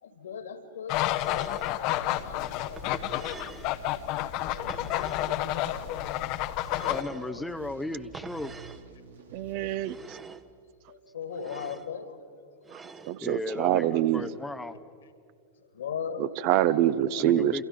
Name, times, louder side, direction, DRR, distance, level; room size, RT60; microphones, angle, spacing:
voice 1, 0.0-3.5 4.1-6.0 6.4-7.5 10.9-12.2 12.7-13.3 13.9-14.3 15.5-16.3, left 7 dB, 65° left, 10 dB, 2.2 m, -40 dB
sound 1, 0.9-7.0, left 15 dB, 40° left, 0.9 m, -30 dB
sound 2, 1.1-1.8 2.8-3.7 4.7-5.4 6.6-7.3 8.1-8.8 9.8-10.5 11.3-11.9 12.6-13.2, right 4 dB, 20° right, 1.0 m, -45 dB
sound 3, 1.9-10.8, right 3 dB, 75° right, 2.8 m, -50 dB
voice 2, 6.8-8.6 13.2-14.8 17.2-17.6, left 1 dB, 5° left, 8 dB, 0.7 m, -36 dB
voice 3, 9.3-10.2 13.1-14.3 16.4-17.6, right 12 dB, 45° right, 15 dB, 0.7 m, -25 dB
28.5 x 28.0 x 5.5 m, 2.4 s
figure-of-eight pair, 90°, 0 cm